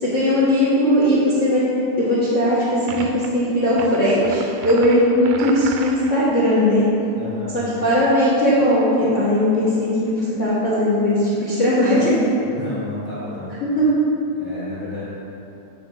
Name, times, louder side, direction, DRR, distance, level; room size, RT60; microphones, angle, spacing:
voice 1, 0.0-1.6 2.0-6.9 7.5-12.1 13.7-13.9, left 1 dB, 80° left, -9 dB, 0.6 m, -18 dB
sound 1, 2.9-3.3 3.7-6.2, right 6 dB, 85° right, 1.6 m, -34 dB
voice 2, 7.1-7.6 12.4-13.8 14.3-15.0, left 2 dB, 45° left, -10 dB, 1.6 m, -32 dB
8.7 x 4.3 x 5.5 m, 2.9 s
omnidirectional pair, 3.6 m